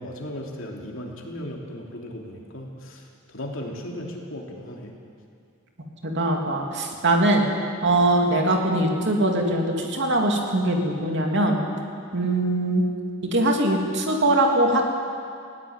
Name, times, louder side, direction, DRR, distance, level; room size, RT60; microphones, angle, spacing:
voice 1, 0.0-4.9, left 1 dB, 65° left, 0 dB, 3.2 m, -36 dB
voice 2, 6.0-7.4 7.8-11.6 12.1-12.8 13.3-14.8, right 1 dB, 55° right, 1 dB, 2.8 m, -21 dB
19.5 x 17.0 x 9.0 m, 2.3 s
head